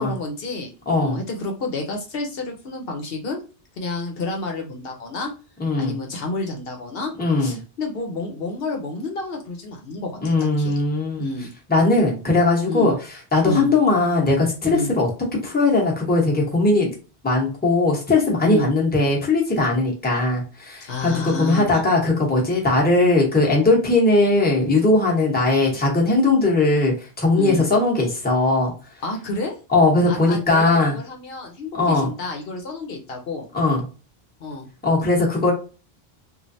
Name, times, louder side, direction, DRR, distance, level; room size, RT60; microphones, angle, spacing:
voice 1, 0.0-0.7 1.0-3.4 3.8-5.3 5.8-7.1 7.4-10.8 11.2-11.5 12.7-12.9 13.4-13.7 14.7-14.9 18.4-18.7 20.9-21.8 27.4-27.6 29.0-29.6 30.1-33.5 34.4-34.7, left 2 dB, 70° left, 2 dB, 0.8 m, -29 dB
voice 2, 0.9-1.2 5.6-5.9 7.2-7.6 10.2-11.3 11.7-12.9 13.3-15.1 15.4-16.9 17.2-28.7 29.7-31.0 31.8-32.1 33.5-33.8 34.8-35.5, left 2 dB, 10° left, -2 dB, 0.8 m, -19 dB
3.1 x 2.4 x 2.6 m, 0.34 s
omnidirectional pair, 1.1 m